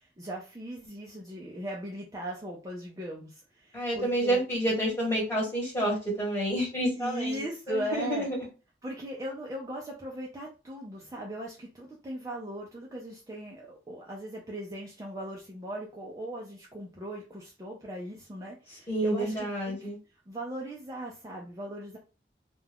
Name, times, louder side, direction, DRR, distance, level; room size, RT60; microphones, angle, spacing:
voice 1, 0.2-4.4 7.0-8.3 8.8-19.9 20.3-22.0, right 1 dB, 20° right, -2 dB, 0.4 m, -38 dB
voice 2, 3.7-7.4 7.7-8.4 18.9-20.0, right 1 dB, 15° left, -5 dB, 1.3 m, -29 dB
2.4 x 2.2 x 3.4 m, 0.32 s
head